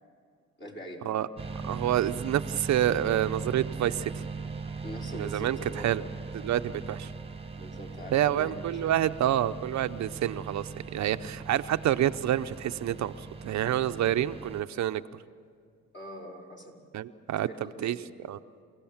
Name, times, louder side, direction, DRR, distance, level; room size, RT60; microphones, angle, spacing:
voice 1, 0.6-1.2 4.8-6.3 7.5-8.9 15.9-16.8 17.4-18.0, equal, 35° left, -1 dB, 5.1 m, -43 dB
sound 1, 1.4-14.6, right 4 dB, 20° right, 1.3 m, -39 dB
voice 2, 1.6-4.1 5.1-5.6 5.8-6.0 6.4-7.1 8.1-13.1 13.4-15.0 16.9-18.0 18.3-18.4, right 12 dB, 65° right, 10 dB, 0.7 m, -28 dB
29.0 x 16.5 x 7.2 m, 2.3 s
cardioid pair, 90°, 30 cm